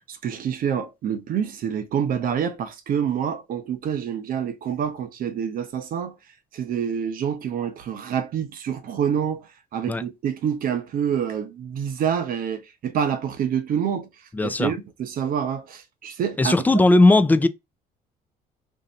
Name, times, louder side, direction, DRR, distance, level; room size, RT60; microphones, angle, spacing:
voice 1, 0.1-6.1 6.5-9.4 9.7-14.1 14.4-16.5, right 8 dB, 55° right, 0.8 m, -27 dB
voice 2, 14.3-14.7 16.4-17.5, left 2 dB, 10° left, 0.3 m, -17 dB
2.7 x 2.6 x 4.2 m
cardioid pair, 110°, 17 cm